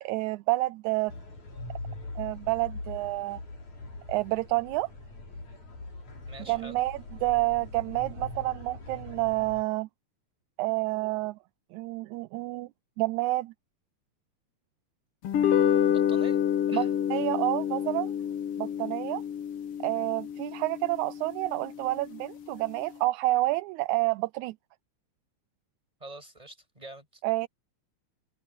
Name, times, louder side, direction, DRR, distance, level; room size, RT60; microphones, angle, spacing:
voice 1, 0.0-1.1 2.2-3.4 4.1-4.9 6.5-9.9 10.6-11.4 11.7-12.7 13.0-13.5 16.7-18.1 18.6-19.2 19.8-24.5 27.2-27.5, right 20 dB, 85° right, 1.9 m, -29 dB
sound 1, 1.1-9.6, left 2 dB, 75° left, 8.3 m, -42 dB
voice 2, 6.3-6.8 15.9-16.4 16.7-16.9 26.0-27.2, right 1 dB, 10° right, 7.2 m, -46 dB
sound 2, 15.2-21.8, left 9 dB, 60° left, 1.9 m, -28 dB
omnidirectional pair, 3.4 m